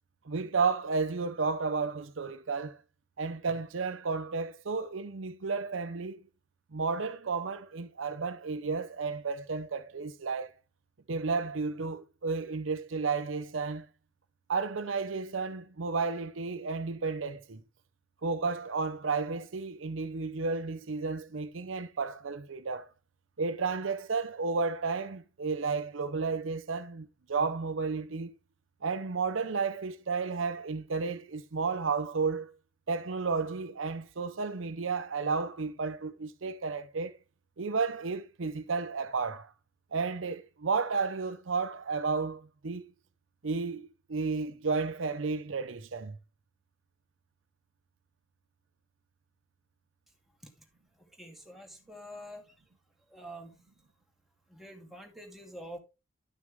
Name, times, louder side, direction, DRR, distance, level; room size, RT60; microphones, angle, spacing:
voice 1, 0.3-2.8 3.2-6.2 6.7-10.5 11.1-13.9 14.5-17.6 18.2-22.9 23.4-28.3 28.8-32.5 32.9-37.1 37.6-39.5 39.9-42.9 43.4-46.2, right 4 dB, 75° right, 0.7 m, -32 dB
voice 2, 51.2-52.4 53.1-53.6 54.5-55.8, equal, ahead, 2.3 m, -46 dB
12.0 x 6.3 x 3.5 m
head